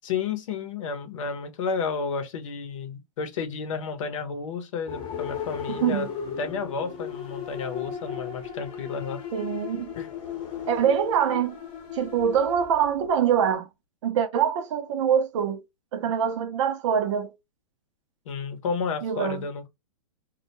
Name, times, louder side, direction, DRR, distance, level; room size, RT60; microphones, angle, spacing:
voice 1, 0.0-6.1 6.4-9.3 9.9-10.1 18.3-19.7, left 5 dB, 60° left, 0.8 m, -31 dB
sound 1, 4.9-13.5, left 7 dB, 30° left, 0.8 m, -36 dB
voice 2, 9.3-9.9 10.7-11.6 11.9-13.7 14.0-15.6 15.9-17.3 19.0-19.4, right 8 dB, 55° right, 0.6 m, -24 dB
2.2 x 2.1 x 2.8 m
hypercardioid pair, 130°, 18 cm